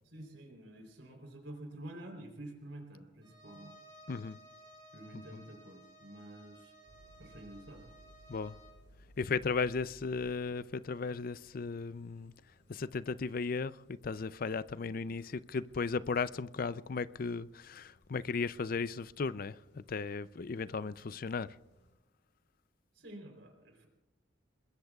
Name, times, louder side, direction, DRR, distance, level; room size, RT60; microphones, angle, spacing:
voice 1, 0.0-3.7 4.9-6.7 7.2-7.8 22.9-23.9, right 1 dB, 75° right, 3.6 m, -49 dB
Bowed string instrument, 3.2-8.8, right 1 dB, 25° right, 3.1 m, -57 dB
voice 2, 4.1-4.4 5.1-5.2 8.3-8.6 9.2-12.3 12.7-21.5, left 4 dB, 50° left, 0.5 m, -36 dB
sound 1, 6.8-21.9, equal, 65° left, 5.1 m, -63 dB
28.0 x 21.0 x 2.4 m
head